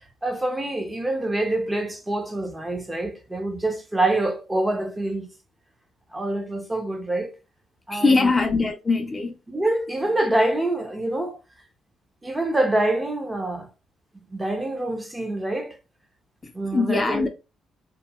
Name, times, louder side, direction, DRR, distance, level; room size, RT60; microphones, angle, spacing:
voice 1, 0.2-5.3 6.1-7.3 7.9-8.3 9.5-11.4 12.2-13.7 14.3-15.8 16.5-17.3, right 1 dB, 15° right, 0.6 m, -26 dB
voice 2, 7.9-9.3 16.4-17.3, left 3 dB, 25° left, 0.5 m, -22 dB
2.9 x 2.5 x 2.2 m
cardioid pair, 90°, 0 cm